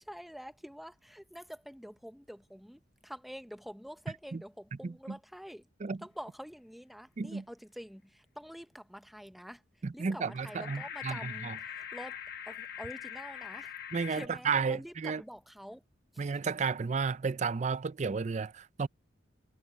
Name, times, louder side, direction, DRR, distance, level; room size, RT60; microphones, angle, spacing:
voice 1, 0.0-5.6 6.0-9.6 9.9-12.2 12.5-13.7 14.1-15.8 16.1-16.2, equal, ahead, 0.8 m, -47 dB
voice 2, 4.8-5.2 5.8-6.0 7.2-7.4 9.8-11.6 13.9-15.2 16.2-18.9, right 5 dB, 35° right, 0.4 m, -33 dB
sound 1, 10.3-14.3, left 9 dB, 50° left, 1.2 m, -43 dB
head